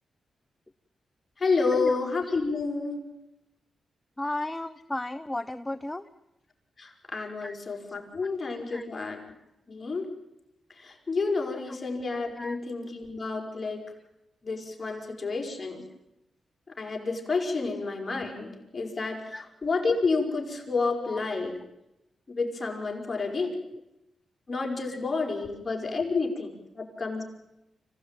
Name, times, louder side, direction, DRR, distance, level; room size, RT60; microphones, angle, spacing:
voice 1, 1.4-3.0 6.8-9.2 9.7-10.1 10.8-13.8 14.4-15.8 16.8-19.4 19.6-21.5 22.3-23.5 24.5-27.2, left 4 dB, 35° left, 2 dB, 5.3 m, -30 dB
voice 2, 4.2-6.1 7.4-7.6 7.8-8.0 8.7-8.9 11.7-11.9 12.3-12.6 19.3-19.4 21.0-21.2 23.7-23.8 24.9-25.0, left 2 dB, 15° left, 11 dB, 0.9 m, -34 dB
25.5 x 16.5 x 9.1 m, 0.91 s
cardioid pair, 65°, 0 cm